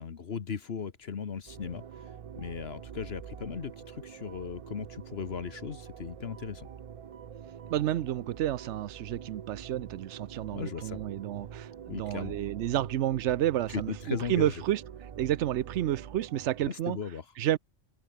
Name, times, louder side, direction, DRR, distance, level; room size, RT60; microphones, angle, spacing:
voice 1, 0.0-2.1 2.4-6.7 10.5-11.0 11.9-12.4 13.7-14.6 16.7-17.2, left 6 dB, 65° left, 1.4 m, -37 dB
sound 1, 1.5-16.7, right 8 dB, 50° right, 0.4 m, -45 dB
voice 2, 7.7-14.8 15.2-17.0 17.4-17.6, right 12 dB, 90° right, 0.9 m, -30 dB
open air
omnidirectional pair, 1.2 m